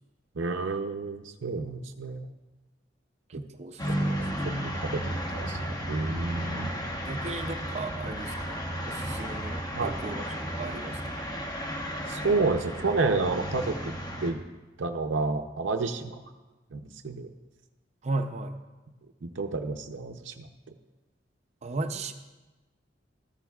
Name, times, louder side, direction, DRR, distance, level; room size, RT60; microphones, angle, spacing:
voice 1, 0.4-2.3 3.3-3.4 3.9-6.7 9.7-10.0 12.1-13.9 14.2-14.4 14.8-16.2 16.7-17.3 19.2-20.5, right 3 dB, 85° right, 5 dB, 0.6 m, -30 dB
voice 2, 3.3-4.3 7.1-10.2 10.6-11.0 18.0-18.6 21.6-22.1, right 3 dB, 35° right, 7 dB, 0.5 m, -35 dB
sound 1, 3.8-14.3, equal, 20° left, 1.1 m, -33 dB
14.0 x 13.5 x 2.4 m, 1.2 s
head